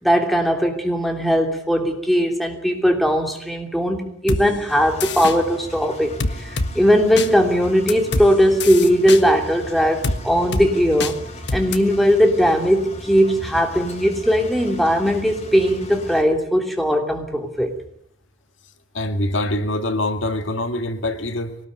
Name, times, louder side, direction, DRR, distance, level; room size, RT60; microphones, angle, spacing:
voice 1, 0.0-11.2 11.5-17.7, equal, ahead, 3.1 m, -19 dB
sound 1, 4.3-4.4 5.0-5.4 6.2-6.7 7.2-7.3 7.9-8.3 8.6-9.2 10.0-10.2 10.5-10.7 11.0-11.1 11.5-11.8, left 3 dB, 60° left, 1.6 m, -24 dB
Engine, 4.7-16.2, left 1 dB, 35° left, 3.8 m, -37 dB
voice 2, 18.9-21.6, left 1 dB, 80° left, 2.0 m, -24 dB
23.5 x 19.0 x 9.5 m
head